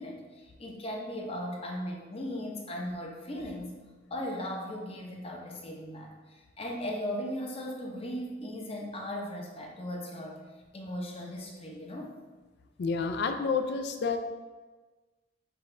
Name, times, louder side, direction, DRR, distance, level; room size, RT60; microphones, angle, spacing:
voice 1, 0.0-3.8 4.1-10.4 10.7-12.1, equal, 30° left, -1 dB, 0.7 m, -37 dB
voice 2, 12.8-14.2, left 5 dB, 60° left, 7 dB, 0.4 m, -29 dB
6.1 x 2.4 x 3.2 m, 1.3 s
head